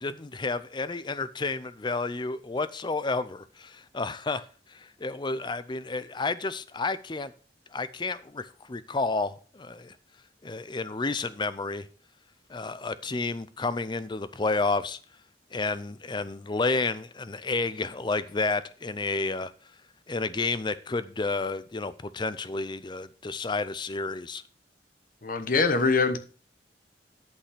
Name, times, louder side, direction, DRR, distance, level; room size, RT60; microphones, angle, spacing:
voice 1, 0.0-4.4 4.7-7.3 7.7-9.9 10.4-11.9 12.5-15.0 15.5-19.5 20.1-24.4, left 3 dB, 25° left, 0.5 m, -31 dB
voice 2, 25.2-26.2, left 4 dB, 50° left, 1.1 m, -23 dB
11.5 x 5.5 x 5.0 m
head